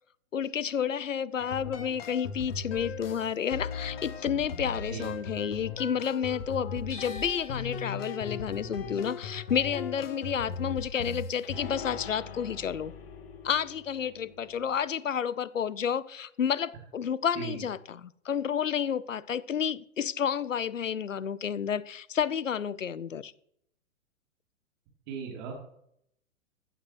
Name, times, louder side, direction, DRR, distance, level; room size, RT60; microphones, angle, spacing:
voice 1, 0.3-12.9 13.4-23.3, left 8 dB, 75° left, 20 dB, 0.7 m, -30 dB
sound 1, 1.4-14.8, left 5 dB, 50° left, 1.5 m, -39 dB
sound 2, 6.9-12.9 13.2-14.5, left 3 dB, 25° left, 5.0 m, -53 dB
voice 2, 25.1-25.5, right 6 dB, 35° right, -1 dB, 3.0 m, -37 dB
15.0 x 10.0 x 3.0 m, 0.72 s
figure-of-eight pair, 110°, 39 cm